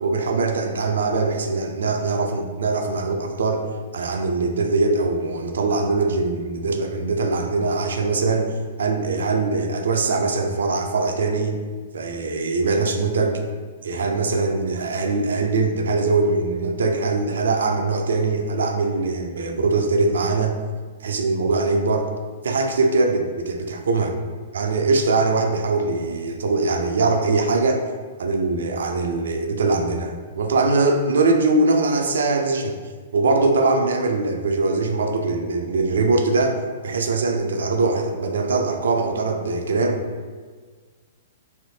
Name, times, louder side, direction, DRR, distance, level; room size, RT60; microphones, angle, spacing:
voice 1, 0.0-3.6 3.9-8.5 8.8-11.6 11.9-13.4 13.8-20.6 21.0-22.1 22.4-24.1 24.5-27.8 28.2-32.7 33.1-36.6 36.8-40.0, right 3 dB, 80° right, 4 dB, 0.4 m, -22 dB
3.3 x 2.7 x 2.7 m, 1.5 s
hypercardioid pair, 120°, 0 cm